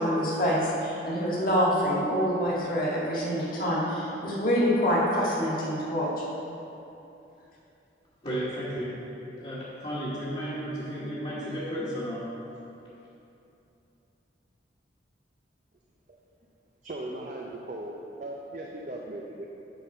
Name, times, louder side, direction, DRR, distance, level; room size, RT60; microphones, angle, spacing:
voice 1, 0.0-6.1, equal, 50° left, -6 dB, 1.8 m, -26 dB
voice 2, 8.2-9.0 9.2-12.2, equal, 35° left, -12 dB, 1.3 m, -33 dB
voice 3, 16.8-19.6, right 1 dB, 40° right, -1 dB, 0.5 m, -38 dB
9.3 x 4.1 x 5.5 m, 2.9 s
head